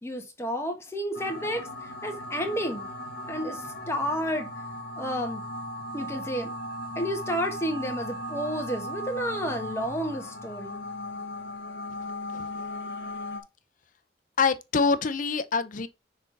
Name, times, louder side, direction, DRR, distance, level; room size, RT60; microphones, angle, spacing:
voice 1, 0.0-2.9 3.3-4.5 4.9-5.4 5.9-6.5 6.9-10.9, equal, 15° left, 1.4 m, -31 dB
sound 1, 1.1-13.4, left 1 dB, 65° left, 1.6 m, -37 dB
voice 2, 14.4-15.9, left 5 dB, 50° left, 0.6 m, -25 dB
6.1 x 4.0 x 3.9 m
head